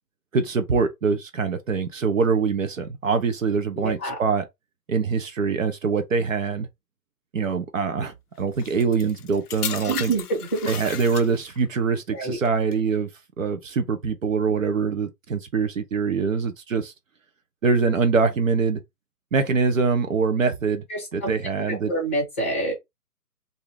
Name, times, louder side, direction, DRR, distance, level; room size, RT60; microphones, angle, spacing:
voice 1, 0.3-4.5 4.9-6.7 7.3-10.1 10.7-13.1 13.4-16.9 17.6-18.8 19.3-20.8 21.1-21.9, right 5 dB, 55° right, 0.6 m, -24 dB
voice 2, 3.7-4.1 9.9-10.7 12.1-12.4 20.9-22.7, right 2 dB, 10° left, 0.7 m, -27 dB
sound 1, 8.6-11.7 12.5-12.7, left 9 dB, 65° left, 0.5 m, -34 dB
2.7 x 2.5 x 3.2 m
figure-of-eight pair, 150°, 49 cm